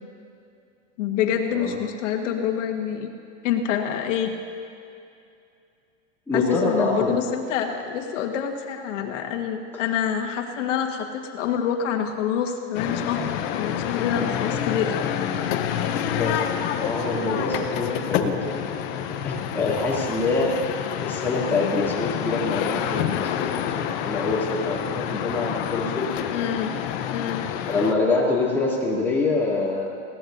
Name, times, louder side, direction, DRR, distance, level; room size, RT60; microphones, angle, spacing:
voice 1, 1.0-3.1 3.4-4.4 6.3-13.2 13.6-15.0 26.3-26.7 27.1-27.5, left 8 dB, 70° left, 3 dB, 1.5 m, -26 dB
voice 2, 6.3-7.1 16.0-16.5 16.7-26.3 27.7-30.0, left 3 dB, 5° left, -7 dB, 2.5 m, -26 dB
sound 1, 12.7-27.9, left 9 dB, 40° left, 0.8 m, -28 dB
20.5 x 17.0 x 2.6 m, 2.5 s
supercardioid pair, 155°, 38 cm